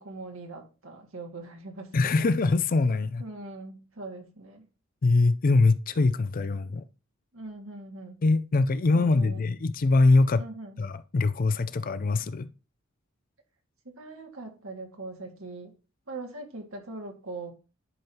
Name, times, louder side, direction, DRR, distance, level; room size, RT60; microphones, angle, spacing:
voice 1, 0.0-2.2 3.2-4.6 7.3-8.2 8.9-9.5 10.4-10.8 13.9-15.7 16.1-17.5, right 2 dB, 85° right, 2.0 m, -41 dB
voice 2, 1.9-3.2 5.0-6.8 8.2-10.4 10.8-12.5, left 3 dB, 45° left, 0.4 m, -23 dB
11.0 x 5.5 x 2.9 m
head